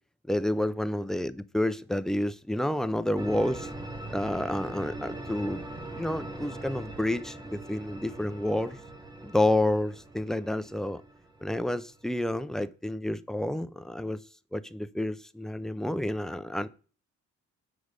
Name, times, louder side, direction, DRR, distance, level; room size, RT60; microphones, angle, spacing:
voice 1, 0.3-3.7 4.1-5.6 5.9-8.8 9.2-11.0 11.4-14.2 14.5-16.7, left 1 dB, ahead, 0.4 m, -29 dB
sound 1, 3.2-12.0, right 2 dB, 15° right, 0.9 m, -41 dB
6.2 x 4.9 x 5.1 m
cardioid pair, 90°, 30 cm